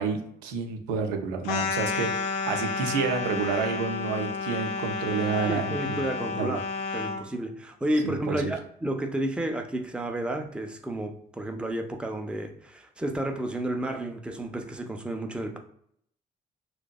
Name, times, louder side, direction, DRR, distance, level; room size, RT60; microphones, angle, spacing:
voice 1, 0.0-6.0 6.3-6.6 8.0-8.5, right 5 dB, 85° right, 0.5 m, -29 dB
sound 1, 1.4-7.2, left 5 dB, 85° left, 0.4 m, -31 dB
voice 2, 5.5-6.6 6.9-15.6, right 1 dB, 5° right, 0.4 m, -31 dB
2.5 x 2.2 x 2.2 m
hypercardioid pair, 45°, 21 cm